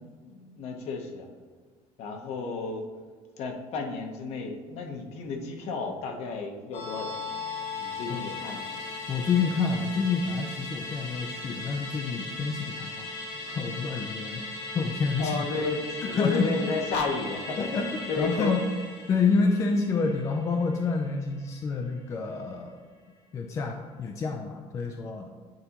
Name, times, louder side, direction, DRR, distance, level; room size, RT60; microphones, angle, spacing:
voice 1, 0.2-1.3 2.0-2.9 3.4-7.3 7.8-8.6 15.2-18.5 19.7-19.8, left 3 dB, 55° left, 4 dB, 0.8 m, -33 dB
Musical instrument, 6.7-21.4 21.7-21.8, left 3 dB, 85° left, 1.5 m, -38 dB
voice 2, 9.1-13.1 13.5-14.4 14.7-15.4 16.1-16.5 17.6-17.9 18.2-18.6 19.1-22.8 23.3-25.3, left 4 dB, 25° left, 4 dB, 0.3 m, -28 dB
8.8 x 4.0 x 2.9 m, 1.5 s
cardioid pair, 175°, 13 cm